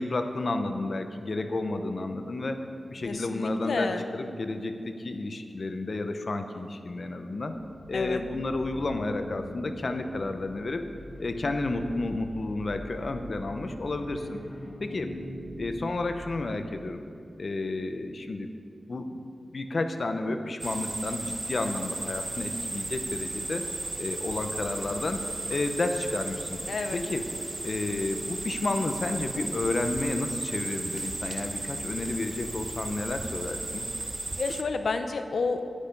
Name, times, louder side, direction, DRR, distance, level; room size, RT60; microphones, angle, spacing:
voice 1, 0.0-2.6 2.9-7.6 7.9-10.9 11.2-14.4 14.8-15.1 15.6-17.0 17.4-18.5 18.9-19.2 19.5-23.7 24.0-26.6 26.9-27.3 27.6-33.8, left 2 dB, 50° left, 7 dB, 0.8 m, -31 dB
voice 2, 3.0-4.0 7.9-8.2 26.7-27.0 34.4-35.7, left 4 dB, 80° left, 7 dB, 0.8 m, -30 dB
sound 1, 7.6-16.8, left 1 dB, 15° left, 0.8 m, -43 dB
sound 2, 20.6-34.6, right 2 dB, 30° right, 0.6 m, -35 dB
11.0 x 10.0 x 5.3 m, 2.5 s
wide cardioid pair, 125°, 0 cm